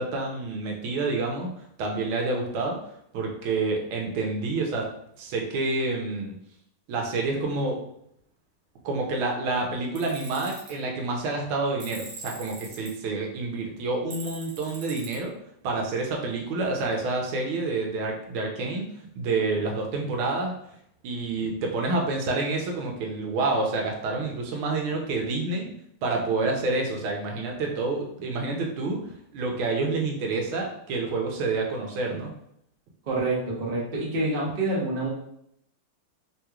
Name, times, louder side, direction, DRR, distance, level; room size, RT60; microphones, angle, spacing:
voice 1, 0.0-1.5 1.8-2.8 3.1-4.9 5.2-6.3 6.9-7.8 8.8-15.3 15.6-18.9 19.1-20.5 21.0-25.7 26.0-32.3, right 3 dB, 85° right, 1 dB, 1.5 m, -28 dB
Tools, 10.0-10.7 11.8-12.9 14.1-15.2, right 3 dB, 65° right, 1.5 m, -41 dB
voice 2, 33.0-35.1, right 2 dB, 45° right, -4 dB, 0.7 m, -27 dB
3.6 x 3.0 x 2.3 m, 0.73 s
omnidirectional pair, 2.2 m